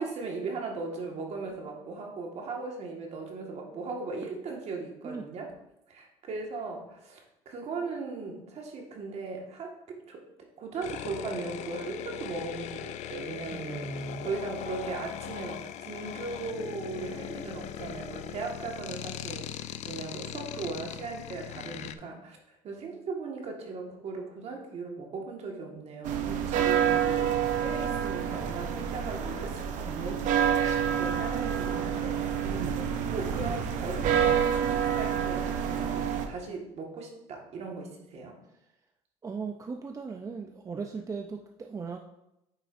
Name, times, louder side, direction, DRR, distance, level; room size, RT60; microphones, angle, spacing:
voice 1, 0.0-5.5 5.9-10.3 10.6-38.4, right 4 dB, 50° right, 1 dB, 1.7 m, -38 dB
sound 1, 10.8-22.0, left 11 dB, 55° left, 0.4 m, -40 dB
voice 2, 13.5-14.3 30.6-30.8 39.2-42.0, right 4 dB, 25° right, 4 dB, 0.5 m, -38 dB
sound 2, 26.0-36.3, right 8 dB, 65° right, 0.8 m, -28 dB
8.8 x 4.9 x 2.6 m, 0.86 s
supercardioid pair, 95°, 14 cm